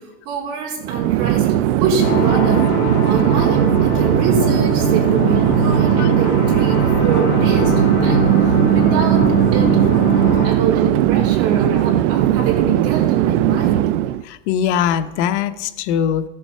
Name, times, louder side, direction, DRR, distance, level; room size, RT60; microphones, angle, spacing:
voice 1, 0.0-2.7 3.0-9.8 10.4-13.9, right 4 dB, 45° right, -1 dB, 3.7 m, -26 dB
Chatter / Fixed-wing aircraft airplane, 0.8-14.2, right 13 dB, 80° right, 0.5 m, -18 dB
sound 1, 2.0-10.5, right 2 dB, 45° left, 3.2 m, -20 dB
voice 2, 14.3-16.3, left 9 dB, 70° left, 11 dB, 0.9 m, -21 dB
14.5 x 6.9 x 5.5 m, 1.1 s
supercardioid pair, 145°, 35 cm